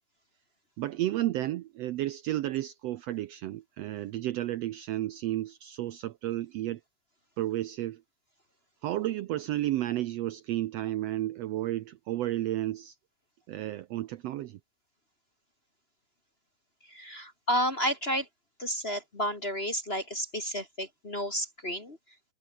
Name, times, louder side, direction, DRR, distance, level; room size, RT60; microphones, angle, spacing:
voice 1, 0.8-6.8 7.4-8.0 8.8-12.9 13.5-14.6, right 14 dB, 75° right, 1.6 m, -32 dB
voice 2, 16.8-18.3 18.6-22.0, equal, 25° left, 1.7 m, -31 dB
omnidirectional pair, 3.5 m